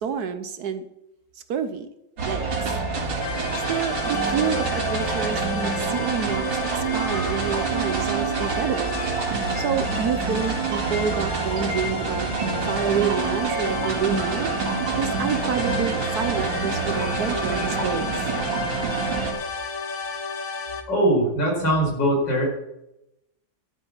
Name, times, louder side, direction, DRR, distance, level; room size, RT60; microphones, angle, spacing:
voice 1, 0.0-0.9 1.5-1.9 2.2-2.8 3.0-6.5 6.7-9.0 9.6-12.3 12.7-14.5 15.0-18.1, right 7 dB, 65° right, 10 dB, 1.2 m, -28 dB
sound 1, 2.2-19.3, right 4 dB, 80° right, 2.9 m, -27 dB
sound 2, 3.2-20.8, left 5 dB, 50° left, 1.5 m, -33 dB
voice 2, 20.9-22.4, right 1 dB, 75° left, -1 dB, 5.6 m, -21 dB
12.5 x 8.5 x 5.8 m, 0.88 s
omnidirectional pair, 2.0 m